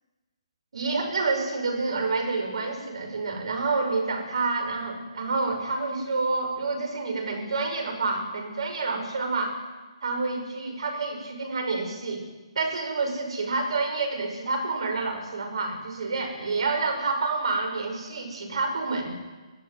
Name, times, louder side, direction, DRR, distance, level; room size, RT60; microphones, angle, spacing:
voice 1, 0.7-9.6 10.0-12.2 12.5-19.1, right 3 dB, 65° right, 4 dB, 6.1 m, -28 dB
23.5 x 14.5 x 9.5 m, 1.2 s
figure-of-eight pair, 140°, 3 cm